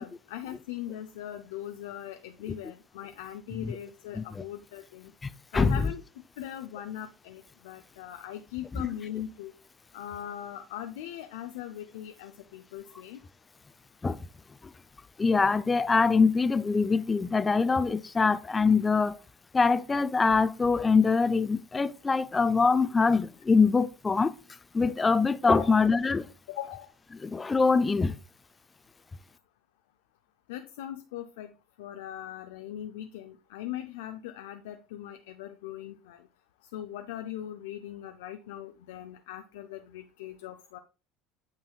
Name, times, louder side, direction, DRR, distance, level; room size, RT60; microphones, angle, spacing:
voice 1, 0.0-5.1 5.5-6.0 6.4-9.5 9.9-13.2 25.6-25.8 26.5-26.9 30.5-31.5 31.8-36.3 36.7-40.8, left 11 dB, 75° left, 0.5 m, -40 dB
voice 2, 5.2-5.8 14.0-14.2 15.2-19.2 19.5-24.3 24.7-26.3 27.2-28.1, left 4 dB, 20° left, 0.5 m, -24 dB
8.9 x 5.5 x 2.3 m
hypercardioid pair, 75°, 0 cm